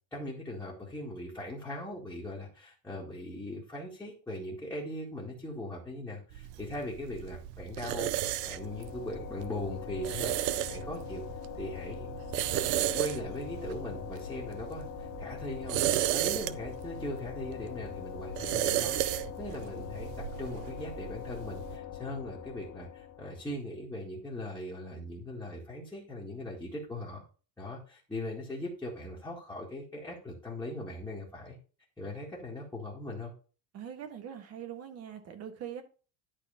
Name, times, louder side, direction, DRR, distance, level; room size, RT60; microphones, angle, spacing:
voice 1, 0.1-10.4 10.7-11.2 11.6-12.1 12.7-15.8 16.1-27.2 27.6-31.6 32.0-33.3, left 1 dB, 5° left, 1.7 m, -40 dB
sound 1, 6.3-21.8, right 13 dB, 75° right, 0.7 m, -34 dB
sound 2, 7.7-23.5, left 10 dB, 45° left, 1.5 m, -43 dB
voice 2, 33.7-35.8, right 9 dB, 35° right, 1.6 m, -42 dB
11.5 x 4.1 x 5.6 m
cardioid pair, 180°, 43 cm